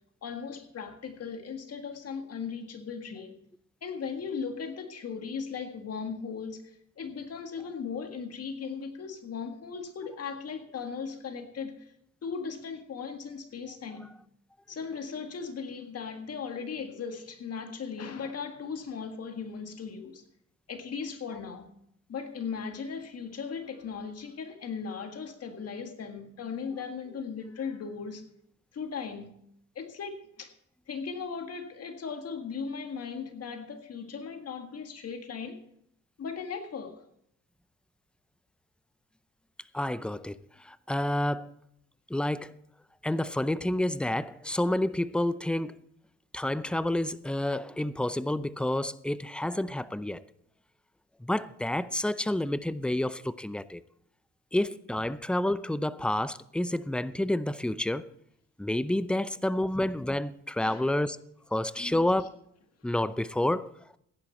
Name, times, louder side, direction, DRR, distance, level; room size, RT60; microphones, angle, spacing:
voice 1, 0.2-3.4 3.8-11.9 12.2-14.1 14.7-20.2 20.7-21.7 22.1-28.2 28.7-29.4 29.8-30.5 30.9-35.6 36.2-37.0 59.6-59.7 60.6-61.0 61.7-62.3 62.8-62.9, left 6 dB, 55° left, 1.9 m, -38 dB
voice 2, 39.7-41.5 42.1-42.6 43.0-45.8 46.3-50.2 51.2-53.8 54.5-58.1 58.6-61.2 61.5-62.4 62.8-63.7, left 1 dB, 5° left, 0.5 m, -29 dB
16.0 x 10.5 x 4.3 m
cardioid pair, 90°, 30 cm